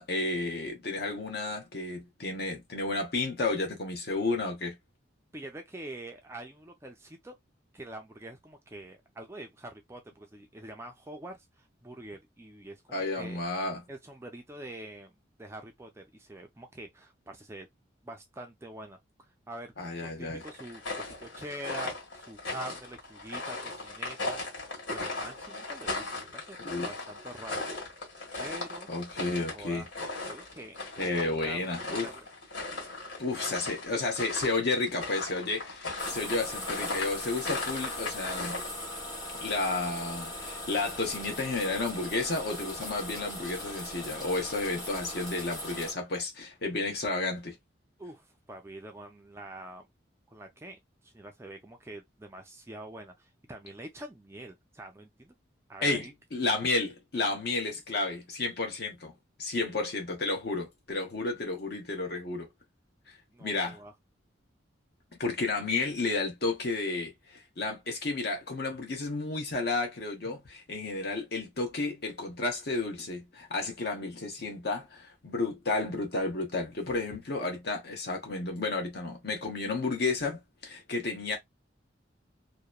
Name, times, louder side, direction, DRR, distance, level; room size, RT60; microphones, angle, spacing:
voice 1, 0.0-4.8 12.9-13.8 19.8-20.4 26.6-26.9 28.9-29.9 31.0-32.1 33.2-38.6 39.4-47.6 55.8-59.1 59.4-62.5 63.1-63.8 65.2-81.4, left 3 dB, 55° left, 0.9 m, -32 dB
voice 2, 5.3-7.4 7.7-13.4 13.9-15.1 15.4-17.7 18.0-19.7 20.0-24.4 24.9-27.7 28.4-28.9 29.3-29.9 30.3-31.7 32.0-32.3 48.0-49.9 50.3-55.3 55.7-56.1 63.3-63.9, right 1 dB, 15° right, 0.4 m, -45 dB
sound 1, 20.4-38.7, left 2 dB, 70° left, 1.6 m, -38 dB
sound 2, 36.0-45.9, left 1 dB, 20° left, 1.1 m, -39 dB
2.9 x 2.1 x 2.3 m
head